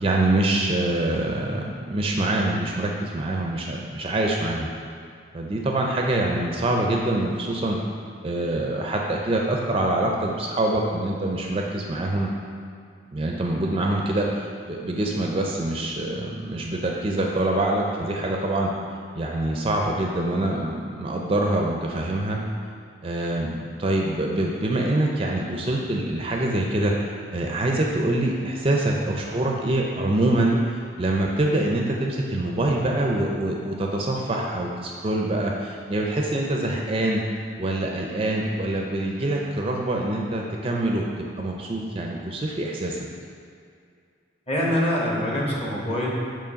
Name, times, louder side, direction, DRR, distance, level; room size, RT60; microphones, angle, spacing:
voice 1, 0.0-4.7 5.3-7.8 8.2-12.3 13.1-18.7 19.2-22.4 23.0-37.2 37.6-43.1, right 1 dB, 30° right, 0 dB, 0.4 m, -25 dB
voice 2, 44.5-46.1, equal, 30° left, -4 dB, 1.0 m, -24 dB
7.0 x 3.1 x 5.1 m, 2.3 s
head